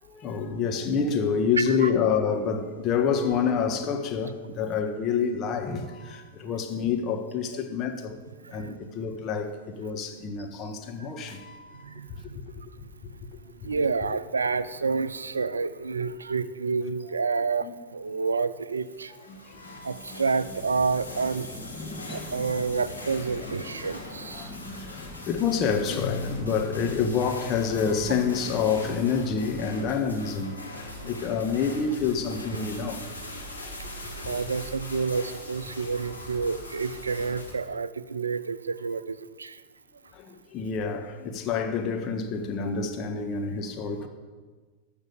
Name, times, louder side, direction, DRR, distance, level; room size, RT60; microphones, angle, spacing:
voice 1, 0.1-8.2 8.5-11.9 13.6-13.7 17.6-17.7 19.3-20.2 21.8-21.9 22.4-22.5 24.3-33.0 34.2-34.3 40.2-44.1, left 6 dB, 30° left, 1.4 m, -28 dB
voice 2, 1.6-1.9 8.5-8.7 11.0-11.1 11.8-12.4 13.6-19.1 19.8-21.5 22.1-24.6 34.2-39.6, right 4 dB, 75° right, 0.5 m, -29 dB
sound 1, 18.8-37.5, left 1 dB, 85° left, 2.1 m, -41 dB
sound 2, 20.5-27.4, left 3 dB, 15° left, 1.1 m, -44 dB
Guitar, 25.9-27.6, left 4 dB, 65° left, 0.6 m, -37 dB
13.0 x 6.0 x 8.3 m
figure-of-eight pair, 90°, 0 cm